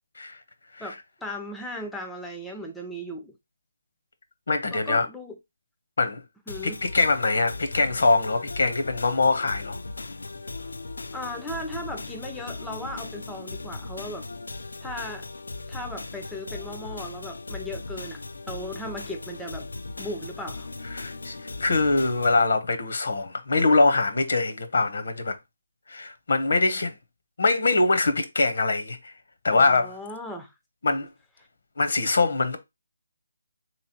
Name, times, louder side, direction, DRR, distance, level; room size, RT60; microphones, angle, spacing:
voice 1, 0.8-3.4 4.7-5.4 6.5-6.8 11.1-14.3 14.8-15.3 15.7-18.2 18.5-19.7 20.0-20.7 29.5-30.5, left 1 dB, 5° left, 0.4 m, -37 dB
voice 2, 4.5-5.1 6.0-6.2 6.6-9.8 20.9-25.4 25.9-26.9 27.4-29.1 29.4-29.9 30.8-31.1 31.8-32.6, left 3 dB, 65° left, 0.8 m, -23 dB
sound 1, 6.5-22.5, left 3 dB, 80° left, 0.4 m, -38 dB
3.4 x 3.0 x 2.9 m
hypercardioid pair, 165°, 0 cm